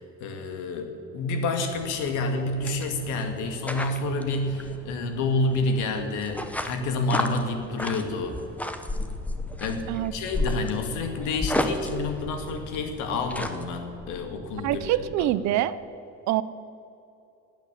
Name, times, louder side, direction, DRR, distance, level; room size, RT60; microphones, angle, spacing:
voice 1, 0.0-8.4 9.6-15.3, left 2 dB, 80° left, 5 dB, 2.1 m, -29 dB
sound 1, 1.7-13.6, left 1 dB, 5° left, 0.8 m, -34 dB
sound 2, 9.5-15.3, right 3 dB, 20° right, 1.1 m, -45 dB
voice 2, 14.6-15.7 16.3-16.4, right 14 dB, 65° right, 15 dB, 0.7 m, -25 dB
17.0 x 8.9 x 7.5 m, 2.7 s
cardioid pair, 150°, 30 cm